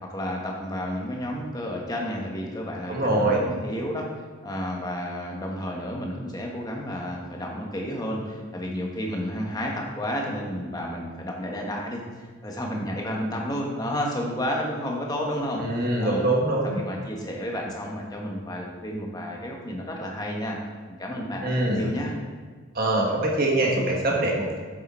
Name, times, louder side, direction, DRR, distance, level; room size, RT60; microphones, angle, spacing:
voice 1, 0.0-4.1 4.4-16.3 16.6-20.6 20.9-22.1, equal, 20° left, -1 dB, 1.2 m, -31 dB
voice 2, 2.9-3.4 15.6-16.8 21.4-21.8 22.7-24.6, right 1 dB, 45° right, -2 dB, 1.6 m, -23 dB
7.9 x 6.7 x 4.3 m, 1.5 s
head